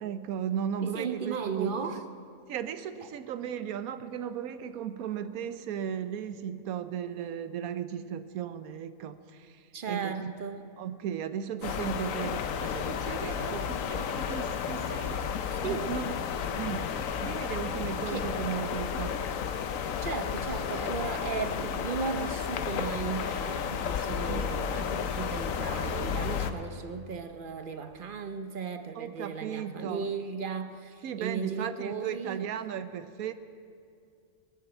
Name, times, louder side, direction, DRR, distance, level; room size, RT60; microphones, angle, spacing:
voice 1, 0.0-1.9 2.5-10.3 10.8-15.2 15.6-16.1 16.5-16.9 17.2-19.2 24.3-24.5 29.0-30.0 31.0-33.3, right 9 dB, 90° right, 12 dB, 1.1 m, -36 dB
voice 2, 0.8-2.1 9.7-10.6 15.5-15.9 18.1-18.3 20.0-32.5, right 5 dB, 50° right, 8 dB, 0.7 m, -36 dB
sound 1, 11.6-26.5, left 7 dB, 70° left, 1.1 m, -32 dB
20.0 x 7.0 x 8.0 m, 2.4 s
omnidirectional pair, 1.5 m